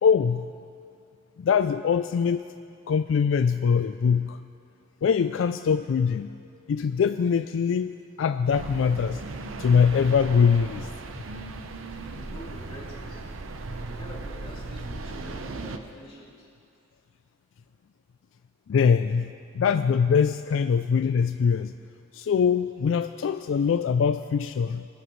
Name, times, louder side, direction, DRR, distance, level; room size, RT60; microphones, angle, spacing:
voice 1, 0.0-0.5 1.4-2.4 2.9-4.4 5.0-6.4 6.7-9.2 9.6-10.9 18.7-21.7 22.1-24.9, left 6 dB, 70° left, 10 dB, 0.3 m, -23 dB
sound 1, 8.5-15.8, right 3 dB, 85° right, 0.7 m, -37 dB
voice 2, 12.1-13.2 13.8-16.5, equal, 30° left, -5 dB, 2.6 m, -45 dB
22.0 x 12.0 x 3.2 m, 2.5 s
head